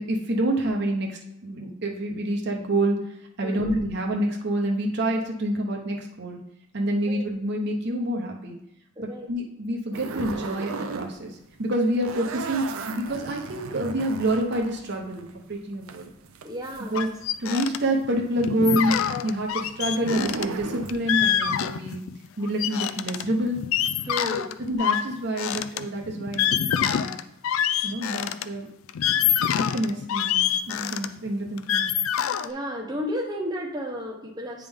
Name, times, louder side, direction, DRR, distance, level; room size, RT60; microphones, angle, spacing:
voice 1, 0.0-6.4 6.7-8.6 9.0-16.1 16.9-17.1 17.4-22.0 22.4-23.6 24.6-27.0 27.8-28.7 29.5-31.9, right 1 dB, 50° right, 1 dB, 0.8 m, -27 dB
voice 2, 3.4-3.7 7.1-7.2 9.0-9.3 16.4-17.1 24.1-24.5 32.4-34.7, equal, 20° right, -1 dB, 0.8 m, -33 dB
sound 1, 9.9-11.1 11.4-17.5 17.8-21.4, right 4 dB, 85° right, 0.5 m, -36 dB
sound 2, 16.9-17.8 18.0-18.1 18.4-22.2 22.4-28.4 28.9-32.5, left 9 dB, 75° left, 0.3 m, -26 dB
9.3 x 3.5 x 3.6 m, 0.79 s
head